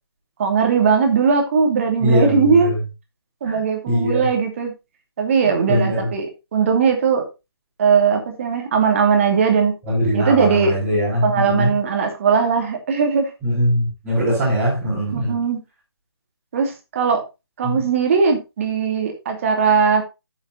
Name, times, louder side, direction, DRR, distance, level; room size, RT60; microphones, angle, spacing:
voice 1, 0.4-2.7 3.4-4.7 5.2-6.3 6.5-7.2 7.8-9.7 10.1-10.7 11.2-13.3 15.1-15.6 16.5-17.2 17.6-20.0, right 6 dB, 30° right, 3 dB, 2.5 m, -19 dB
voice 2, 2.0-2.8 3.4-3.6 3.9-4.3 5.7-6.1 9.9-11.7 13.4-15.4 17.6-17.8, equal, 10° right, -9 dB, 4.5 m, -21 dB
13.5 x 7.5 x 2.7 m, 0.25 s
figure-of-eight pair, 145°, 13 cm